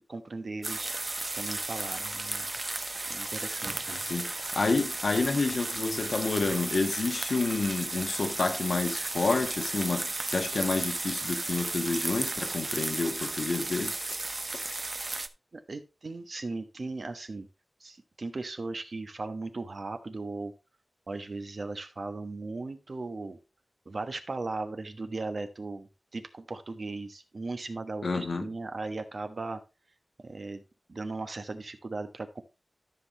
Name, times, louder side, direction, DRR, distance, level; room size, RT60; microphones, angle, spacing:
voice 1, 0.1-0.9 1.3-2.5 3.1-4.1 15.5-17.5 17.8-20.5 21.1-23.4 23.8-29.6 30.2-30.6 30.9-32.4, right 3 dB, 55° right, 1.2 m, -37 dB
sound 1, 0.6-15.3, right 2 dB, 40° right, 0.7 m, -34 dB
voice 2, 4.1-13.9 28.0-28.5, left 3 dB, 75° left, 1.4 m, -29 dB
13.0 x 5.8 x 3.2 m
wide cardioid pair, 95°, 0 cm